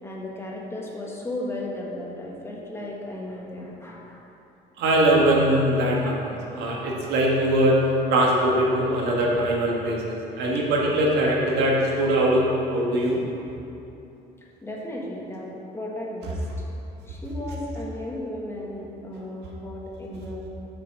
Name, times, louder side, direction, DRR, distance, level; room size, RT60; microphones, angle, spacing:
voice 1, 0.0-4.2 14.6-15.5 15.7-16.3 17.1-20.4, left 1 dB, 15° left, -3 dB, 1.6 m, -35 dB
voice 2, 4.8-7.8 8.1-13.2, right 1 dB, 85° right, -3 dB, 1.8 m, -22 dB
7.6 x 6.1 x 6.1 m, 2.8 s
cardioid pair, 110°, 17 cm